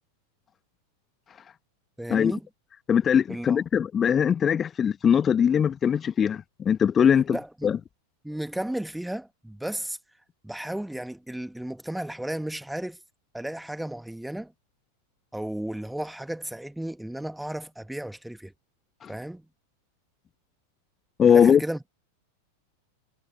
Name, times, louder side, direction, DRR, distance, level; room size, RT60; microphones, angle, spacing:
voice 1, 2.0-2.5 3.3-3.6 7.3-7.8 8.2-10.0 10.4-13.0 13.3-14.5 15.3-18.5 19.1-19.5 21.3-21.9, right 1 dB, 5° right, 1.8 m, -34 dB
voice 2, 2.9-7.8 19.0-19.1 21.2-21.6, left 8 dB, 20° left, 1.1 m, -21 dB
figure-of-eight pair, 90°, 0 cm